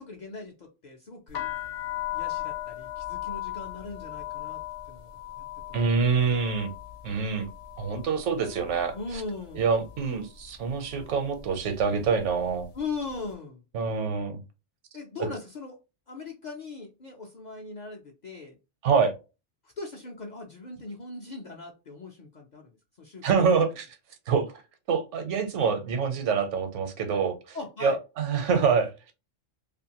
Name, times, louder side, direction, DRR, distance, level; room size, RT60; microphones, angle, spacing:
voice 1, 0.0-1.5 2.1-4.6 4.9-5.9 8.9-9.7 12.7-13.6 14.9-15.8 16.1-18.6 19.6-23.6 27.5-28.0, left 3 dB, 55° left, 0.5 m, -39 dB
sound 1, 1.3-9.2 9.5-10.1 10.8-11.1 11.3-12.8, left 14 dB, 85° left, 0.9 m, -37 dB
voice 2, 5.7-6.7 7.0-7.5 7.8-8.9 9.5-12.7 13.7-14.4 18.8-19.1 23.2-23.8 24.3-24.6 24.9-29.1, right 5 dB, 80° right, 1.0 m, -26 dB
2.6 x 2.5 x 2.8 m
omnidirectional pair, 1.2 m